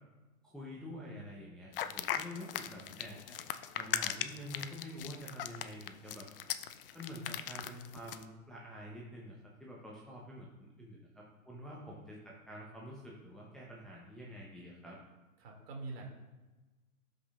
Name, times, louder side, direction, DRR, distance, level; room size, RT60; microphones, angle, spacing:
voice 1, 0.4-3.4 3.7-6.3 6.9-15.0, equal, ahead, -5 dB, 0.8 m, -47 dB
sound 1, 1.7-8.2, left 10 dB, 45° left, 0.5 m, -38 dB
voice 2, 2.7-3.1 11.8-12.1 15.4-16.1, right 3 dB, 45° right, 0 dB, 2.5 m, -47 dB
13.0 x 5.3 x 2.5 m, 1.1 s
hypercardioid pair, 120°, 41 cm